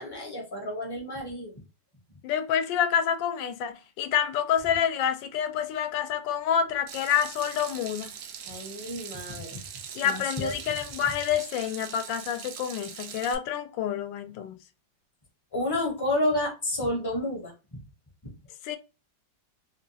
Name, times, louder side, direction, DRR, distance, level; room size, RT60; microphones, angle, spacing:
voice 1, 0.0-1.6 8.5-9.6 10.0-10.5 15.5-17.8 18.2-18.3, left 1 dB, 25° left, 0.5 m, -30 dB
voice 2, 2.2-8.1 9.9-14.6 18.6-18.8, left 9 dB, 85° left, 1.3 m, -28 dB
Water tap faucet / Sink (filling or washing), 6.9-13.3, right 8 dB, 70° right, 0.9 m, -42 dB
3.5 x 2.2 x 2.7 m
omnidirectional pair, 2.0 m